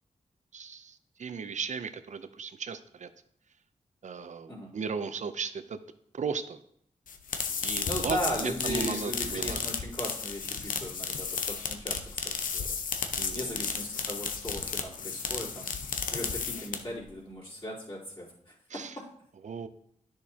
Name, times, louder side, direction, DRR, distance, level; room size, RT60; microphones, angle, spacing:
voice 1, 0.5-3.1 4.0-5.8 6.1-6.6 7.5-8.2 8.4-9.6 13.2-13.8 18.7-18.9 19.4-19.7, right 6 dB, 60° right, 11 dB, 0.6 m, -36 dB
sound 1, 7.1-17.0, left 6 dB, 85° left, 0.7 m, -33 dB
voice 2, 7.8-12.0 12.5-12.7 13.0-15.8 16.1-19.0, equal, 40° left, -7 dB, 3.5 m, -37 dB
10.5 x 6.4 x 2.9 m, 0.69 s
wide cardioid pair, 75°, 14 cm